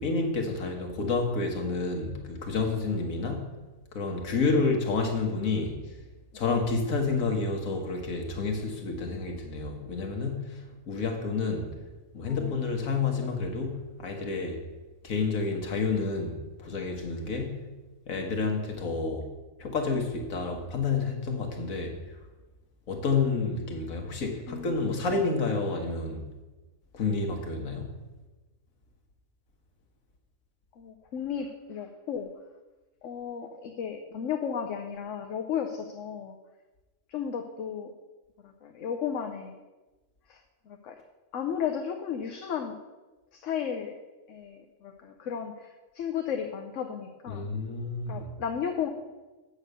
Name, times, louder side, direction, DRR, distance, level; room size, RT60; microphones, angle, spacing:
voice 1, 0.0-3.5 3.9-5.8 6.3-11.8 12.1-14.6 15.0-17.6 18.1-19.3 19.6-22.0 22.9-26.3 26.9-27.9 47.3-48.2, left 4 dB, 85° left, 3 dB, 1.7 m, -29 dB
voice 2, 12.2-12.6 24.5-25.0 30.8-32.3 33.0-36.4 37.1-37.9 38.4-39.5 40.3-40.4 40.7-41.0 41.3-42.8 43.3-43.9 44.3-47.5 48.1-48.9, left 8 dB, 70° left, 4 dB, 1.1 m, -34 dB
8.1 x 6.6 x 6.6 m, 1.2 s
omnidirectional pair, 1.4 m